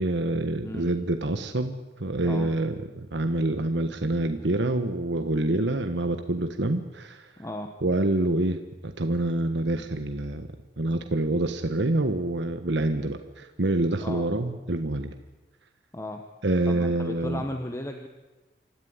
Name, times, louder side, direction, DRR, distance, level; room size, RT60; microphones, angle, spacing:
voice 1, 0.0-7.3 7.8-10.5 10.8-15.1 16.4-17.4, right 2 dB, 85° right, 7 dB, 1.4 m, -26 dB
voice 2, 7.4-7.7 14.0-14.2 15.9-16.2 16.7-18.1, left 1 dB, 15° left, 4 dB, 1.3 m, -35 dB
26.0 x 14.0 x 9.6 m, 1.2 s
head